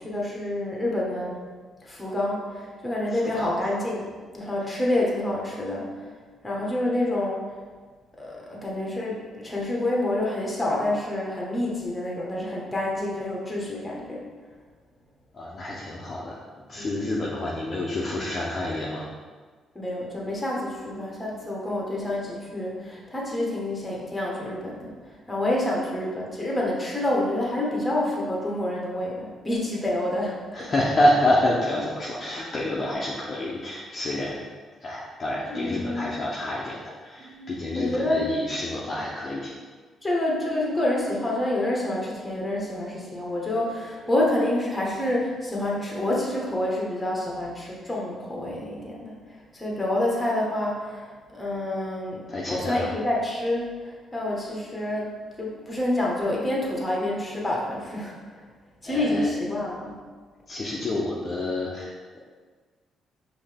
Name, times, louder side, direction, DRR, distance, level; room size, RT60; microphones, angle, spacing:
voice 1, 0.0-1.4 1.8-5.9 6.4-7.6 8.2-14.2 16.7-17.2 19.7-24.9 25.3-30.7 35.5-36.1 37.2-38.3 40.0-49.1 49.5-58.4 58.8-60.0, left 1 dB, 15° left, -3 dB, 1.2 m, -28 dB
voice 2, 15.3-16.4 16.7-19.0 30.5-34.4 34.8-39.5 52.3-52.9 58.9-59.3 60.5-62.2, left 1 dB, 40° left, -5 dB, 0.7 m, -27 dB
5.4 x 2.8 x 3.5 m, 1.5 s
cardioid pair, 90°, 0 cm